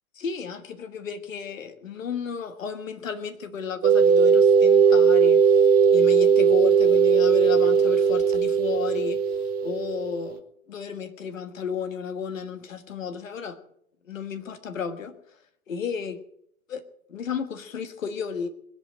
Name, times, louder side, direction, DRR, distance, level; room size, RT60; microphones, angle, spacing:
voice 1, 0.1-9.2 9.6-10.4 10.7-13.6 14.0-15.1 15.7-16.2 16.7-16.8 17.1-18.5, left 6 dB, 65° left, 8 dB, 1.7 m, -33 dB
sound 1, 3.8-10.4, right 6 dB, 20° right, 0.9 m, -18 dB
20.5 x 8.4 x 7.4 m, 0.70 s
figure-of-eight pair, 100°, 42 cm